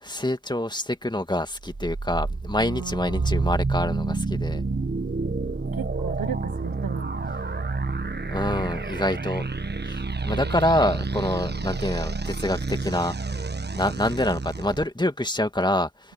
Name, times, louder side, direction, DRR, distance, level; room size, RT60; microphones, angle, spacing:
voice 1, 0.0-4.6 8.3-9.5 9.8-13.5 13.7-16.1, left 1 dB, 10° left, 2.3 m, -26 dB
sound 1, 1.6-14.8, right 3 dB, 25° right, 1.4 m, -29 dB
voice 2, 2.6-3.5 5.7-7.3 10.3-10.6 11.2-11.8, right 7 dB, 70° right, 1.0 m, -37 dB
cardioid pair, 65°, 37 cm